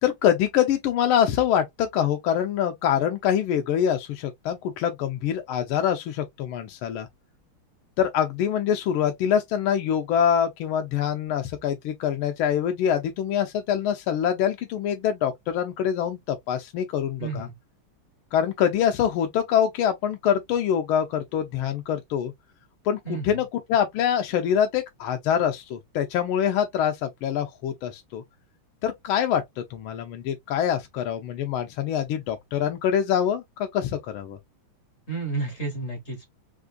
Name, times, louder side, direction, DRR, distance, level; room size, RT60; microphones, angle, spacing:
voice 1, 0.0-7.1 8.0-17.5 18.3-22.3 22.8-28.2 28.8-34.4, left 9 dB, 80° left, 1.4 m, -25 dB
voice 2, 17.2-17.5 23.0-23.3 35.1-36.3, right 4 dB, 45° left, 1.0 m, -31 dB
4.3 x 2.4 x 2.3 m
omnidirectional pair, 2.3 m